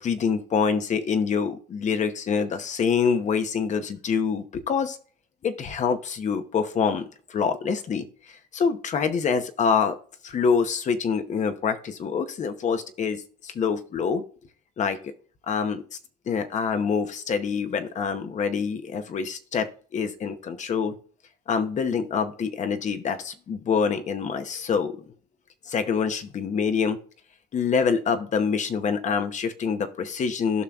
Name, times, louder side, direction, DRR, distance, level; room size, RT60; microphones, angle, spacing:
voice 1, 0.0-5.0 5.4-10.0 10.2-14.2 14.8-15.1 15.5-15.8 16.3-20.9 21.5-25.0 25.7-27.0 27.5-30.6, left 6 dB, 45° left, 9 dB, 0.9 m, -26 dB
12.5 x 5.7 x 2.4 m, 0.41 s
cardioid pair, 110°, 17 cm